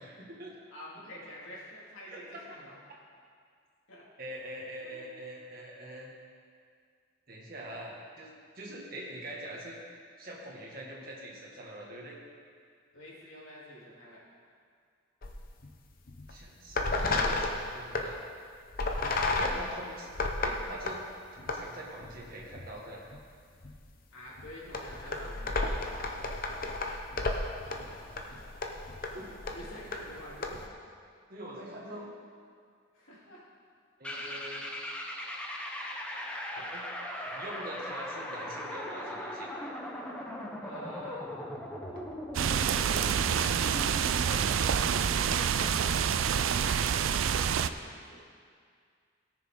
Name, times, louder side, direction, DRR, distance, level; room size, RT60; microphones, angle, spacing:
voice 1, 0.0-0.5 2.1-2.2 4.2-6.1 7.3-8.3 8.6-9.8 10.2-12.2 16.3-18.2 19.4-20.1 20.4-21.0 21.3-23.0 27.5-28.3 29.1-29.3 31.3-32.1 34.0-34.7 36.6-36.9 37.2-39.5 44.2-44.5, right 1 dB, 45° right, -3 dB, 1.9 m, -44 dB
voice 2, 0.7-2.8 3.9-5.2 12.9-14.2 19.2-19.7 24.1-25.9 29.5-30.6 31.8-32.0 32.9-33.4 34.1-34.4 40.6-41.3 42.4-43.6 44.5-48.2, left 1 dB, 85° left, -6 dB, 3.1 m, -48 dB
sound 1, 15.2-15.7 16.1-16.3 16.7-18.1 18.7-21.0 21.4-21.6 22.0-22.8 23.1-23.2 23.6-23.8 24.4-30.7, left 2 dB, 45° left, 0.8 m, -33 dB
sound 2, 34.0-46.1, equal, 5° left, 0.7 m, -39 dB
sound 3, 42.3-47.7, right 8 dB, 80° right, 0.4 m, -27 dB
17.5 x 6.7 x 3.8 m, 2.1 s
head